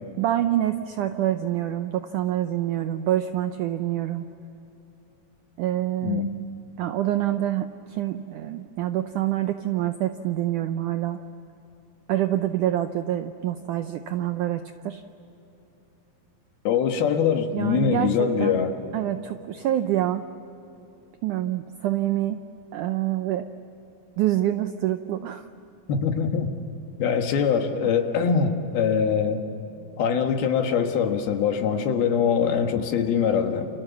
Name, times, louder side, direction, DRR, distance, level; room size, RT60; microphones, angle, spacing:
voice 1, 0.2-4.3 5.6-6.3 6.8-11.2 12.1-15.0 17.5-18.6 18.9-20.3 21.2-22.4 22.7-23.5 24.2-25.5, right 12 dB, 80° right, 9 dB, 1.8 m, -26 dB
voice 2, 6.0-6.3 16.6-18.7 25.9-26.5 27.0-29.4 30.0-33.7, left 7 dB, 75° left, 5 dB, 3.4 m, -23 dB
29.0 x 28.0 x 7.1 m, 3.0 s
omnidirectional pair, 4.4 m